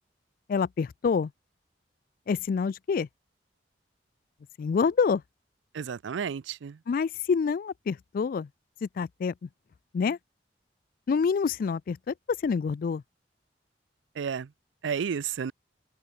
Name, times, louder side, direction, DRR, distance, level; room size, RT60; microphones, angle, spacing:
voice 1, 0.5-1.3 2.3-3.1 4.6-5.2 6.9-8.5 8.8-9.5 9.9-10.2 11.1-12.1 12.4-13.0, left 5 dB, 50° left, 0.3 m, -27 dB
voice 2, 5.7-6.8 14.2-14.5 14.8-15.5, right 7 dB, 85° right, 0.4 m, -32 dB
open air
head